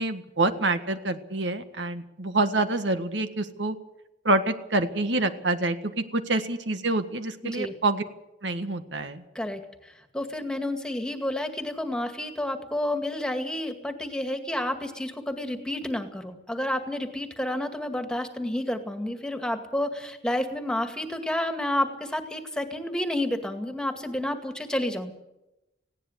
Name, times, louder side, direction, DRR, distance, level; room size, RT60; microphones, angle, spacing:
voice 1, 0.0-3.7 4.2-8.0 8.4-9.2, right 2 dB, 80° right, 9 dB, 1.7 m, -27 dB
voice 2, 7.4-7.7 9.4-25.1, left 1 dB, 5° left, 6 dB, 2.1 m, -30 dB
19.5 x 17.0 x 8.1 m, 0.92 s
head